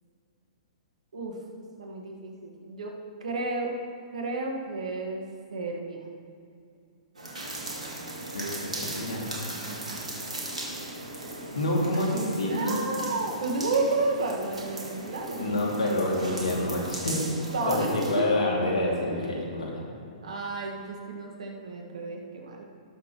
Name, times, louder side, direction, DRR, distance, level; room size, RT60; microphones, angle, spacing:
voice 1, 1.1-2.9 3.2-3.7 4.1-5.2 5.5-6.1 9.6-10.0 12.5-15.5 17.5-18.3 18.8-18.9 20.2-22.6, right 3 dB, 70° right, 1 dB, 1.7 m, -32 dB
sound 1, 7.1-18.2, right 1 dB, 90° right, 2.1 m, -37 dB
voice 2, 8.8-9.3 11.5-12.8 15.4-19.8, left 1 dB, 80° left, -3 dB, 2.5 m, -27 dB
18.5 x 6.6 x 3.1 m, 2.4 s
hypercardioid pair, 115°, 4 cm